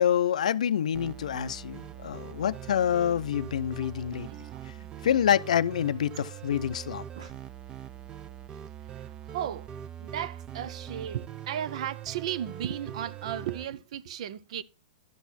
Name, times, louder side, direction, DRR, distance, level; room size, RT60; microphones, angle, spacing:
voice 1, 0.0-4.3 5.0-7.0, left 9 dB, 80° left, 0.5 m, -27 dB
sound 1, 0.9-13.7, right 10 dB, 25° right, 0.6 m, -42 dB
voice 2, 3.8-4.9 6.1-6.2 6.7-6.8 7.1-7.3 8.8-9.7 10.0-14.6, right 10 dB, 60° right, 0.7 m, -36 dB
12.0 x 6.2 x 4.1 m
hypercardioid pair, 130°, 4 cm